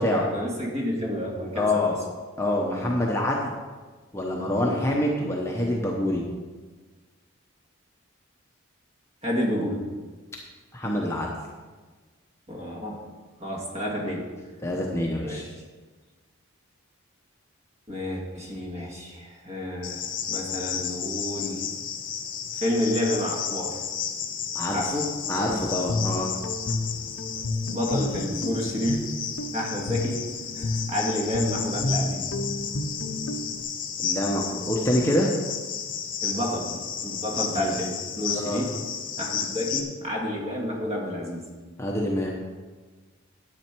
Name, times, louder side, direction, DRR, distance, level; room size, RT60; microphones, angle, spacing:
voice 1, 0.0-2.0 2.7-2.9 4.6-4.8 9.2-9.8 12.5-13.0 13.4-14.3 15.2-15.5 17.9-21.6 22.5-23.8 24.7-25.1 27.7-29.0 29.5-32.3 36.2-38.7 39.2-41.5, left 1 dB, 30° right, -2 dB, 2.1 m, -30 dB
voice 2, 1.5-2.0 2.4-3.5 4.1-6.2 10.7-11.3 14.6-15.4 24.5-24.8 25.3-26.3 34.0-35.3 37.5-37.7 38.3-38.6 41.8-42.3, left 1 dB, 10° left, -2 dB, 0.9 m, -26 dB
Cricket, 19.8-39.8, left 7 dB, 40° left, 1.0 m, -33 dB
Guitar, 25.6-33.6, left 2 dB, 65° left, 0.7 m, -31 dB
10.5 x 8.4 x 4.6 m, 1.4 s
head